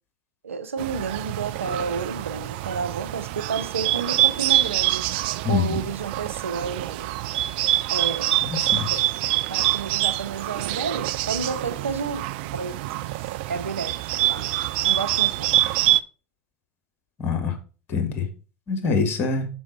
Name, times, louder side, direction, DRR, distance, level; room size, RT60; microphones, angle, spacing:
voice 1, 0.4-5.0 5.4-7.1 7.9-8.3 8.9-9.0 9.5-12.3 12.5-13.0 13.5-13.9 14.3-14.5 14.8-15.5, right 5 dB, 80° right, 0.8 m, -30 dB
Bird, 0.8-16.0, right 15 dB, 55° right, 0.3 m, -25 dB
voice 2, 5.4-5.9 8.5-8.9 17.2-17.6 17.9-18.3 18.7-19.5, left 4 dB, 35° left, 1.6 m, -24 dB
6.2 x 4.7 x 4.0 m
figure-of-eight pair, 85°, 7 cm